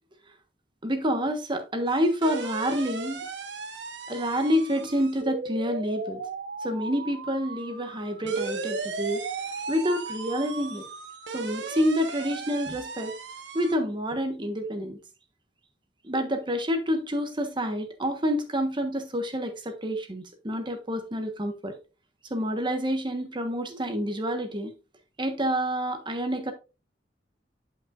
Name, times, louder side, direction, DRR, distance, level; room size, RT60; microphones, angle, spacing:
voice 1, 0.8-3.2 4.1-6.2 6.6-9.2 9.7-10.8 11.3-13.1 13.5-15.0 16.0-21.7 22.3-24.7 25.2-26.5, equal, 30° right, 1.3 m, -28 dB
sound 1, 1.9-13.8, right 4 dB, 90° right, 1.1 m, -36 dB
10.0 x 5.7 x 2.5 m
head